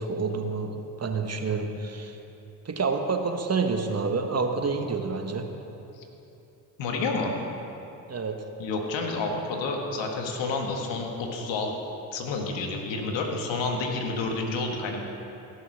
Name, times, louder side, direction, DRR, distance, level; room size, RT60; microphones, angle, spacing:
voice 1, 0.0-2.2 2.6-5.6 8.1-8.4, right 4 dB, 35° right, 5 dB, 1.3 m, -28 dB
voice 2, 6.8-7.3 8.6-11.8 12.1-15.0, left 3 dB, 70° left, 2 dB, 1.7 m, -29 dB
15.0 x 6.4 x 6.3 m, 3.0 s
hypercardioid pair, 55°, 46 cm